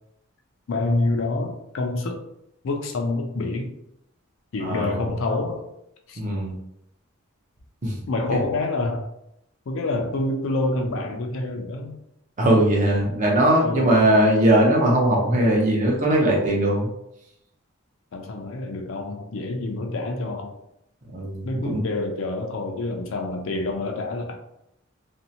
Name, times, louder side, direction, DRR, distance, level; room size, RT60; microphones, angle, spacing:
voice 1, 0.7-2.2 2.6-3.7 4.5-5.6 6.1-6.2 8.1-9.1 9.7-12.0 13.6-14.1 18.1-20.6 21.4-24.4, left 2 dB, 60° left, 3 dB, 0.4 m, -27 dB
voice 2, 4.6-5.1 6.2-6.5 7.8-7.9 12.4-16.9 21.1-21.8, right 1 dB, 35° right, -2 dB, 0.6 m, -20 dB
2.6 x 2.1 x 2.7 m, 0.79 s
head